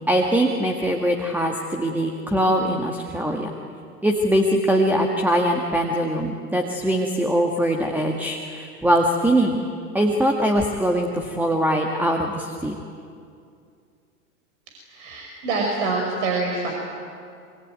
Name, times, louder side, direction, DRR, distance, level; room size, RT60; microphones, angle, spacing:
voice 1, 0.1-3.5 4.0-9.6 9.9-12.8, equal, 5° right, 2 dB, 1.9 m, -22 dB
voice 2, 14.9-16.7, right 3 dB, 55° right, 0 dB, 5.6 m, -25 dB
26.0 x 24.5 x 9.1 m, 2.3 s
figure-of-eight pair, 100°, 44 cm